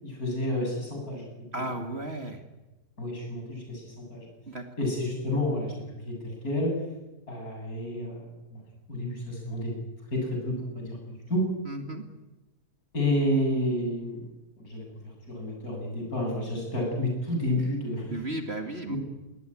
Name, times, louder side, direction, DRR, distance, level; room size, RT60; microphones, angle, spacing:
voice 1, 0.0-1.2 1.5-1.7 3.0-4.3 4.8-6.8 7.3-8.6 8.9-9.7 10.1-11.0 11.3-11.5 12.9-14.2 14.6-14.9 15.3-18.2 18.9-19.0, left 1 dB, 60° left, 1 dB, 8.4 m, -30 dB
voice 2, 1.5-2.4 4.5-4.6 11.7-12.0 18.1-19.0, right 2 dB, 40° right, 5 dB, 2.2 m, -34 dB
21.5 x 18.0 x 10.0 m, 1.0 s
omnidirectional pair, 1.8 m